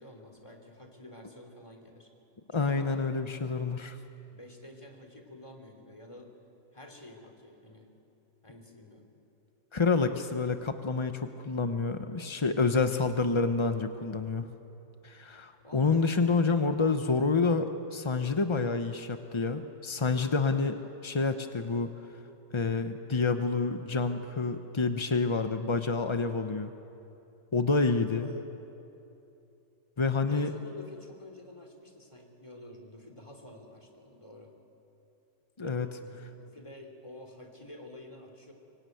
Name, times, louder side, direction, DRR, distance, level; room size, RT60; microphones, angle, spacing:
voice 1, 0.0-2.1 2.5-3.0 4.3-6.3 6.7-7.9 8.4-9.1 15.6-16.0 28.0-28.5 30.2-34.5 36.0-38.5, left 1 dB, 15° left, 3 dB, 3.2 m, -49 dB
voice 2, 2.5-4.0 9.7-14.5 15.0-21.9 22.5-26.7 27.5-28.3 30.0-30.5 35.6-36.0, left 4 dB, 40° left, 7 dB, 0.4 m, -28 dB
25.0 x 24.0 x 9.3 m, 2.9 s
omnidirectional pair, 1.9 m